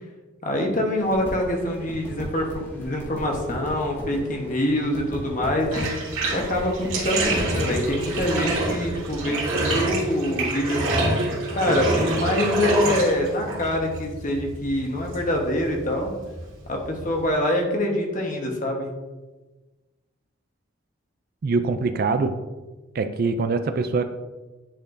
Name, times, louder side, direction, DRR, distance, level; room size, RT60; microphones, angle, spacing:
voice 1, 0.4-5.8 6.3-11.1 11.5-16.1 16.7-18.9, left 1 dB, 40° left, 1 dB, 1.1 m, -25 dB
sound 1, 1.0-8.7, equal, 10° left, 1.4 m, -37 dB
Bathtub (filling or washing), 5.7-17.3, right 2 dB, 75° right, 2.2 m, -27 dB
voice 2, 21.4-22.3 22.9-24.0, right 4 dB, 45° right, 9 dB, 0.3 m, -23 dB
10.0 x 4.4 x 2.6 m, 1.2 s
head